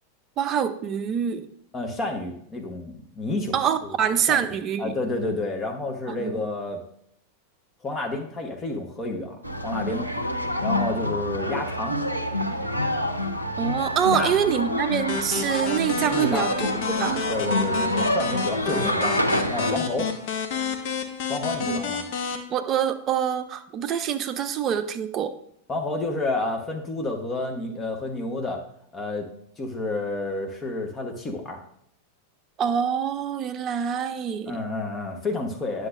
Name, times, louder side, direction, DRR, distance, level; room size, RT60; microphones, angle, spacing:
voice 1, 0.4-1.5 3.5-5.0 6.1-6.4 13.6-17.3 21.7-21.8 22.5-25.3 32.6-34.6, right 8 dB, 30° right, 10 dB, 0.6 m, -25 dB
voice 2, 1.7-3.5 3.8-4.0 4.3-4.4 4.8-6.8 7.8-10.1 10.6-12.0 14.1-14.3 16.1-16.5 17.3-19.2 19.5-20.1 21.3-22.0 25.7-28.6 28.9-29.3 29.6-31.6 34.5-35.9, left 2 dB, 20° left, 3 dB, 1.0 m, -30 dB
sound 1, 9.4-19.8, left 1 dB, 90° right, 0.6 m, -27 dB
sound 2, 15.1-22.4, left 6 dB, 50° left, 0.8 m, -30 dB
9.6 x 6.4 x 2.5 m, 0.68 s
figure-of-eight pair, 90°, 0 cm